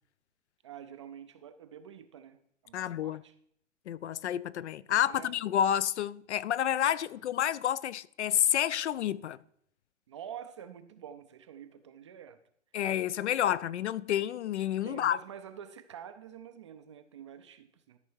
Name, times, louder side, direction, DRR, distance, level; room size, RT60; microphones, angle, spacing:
voice 1, 0.6-3.3 5.0-5.3 10.1-12.4 14.8-18.0, right 8 dB, 25° right, 0.4 m, -47 dB
voice 2, 2.7-3.2 3.9-9.4 12.7-15.2, left 10 dB, 65° left, 0.5 m, -29 dB
13.0 x 5.3 x 4.6 m
hypercardioid pair, 135°, 37 cm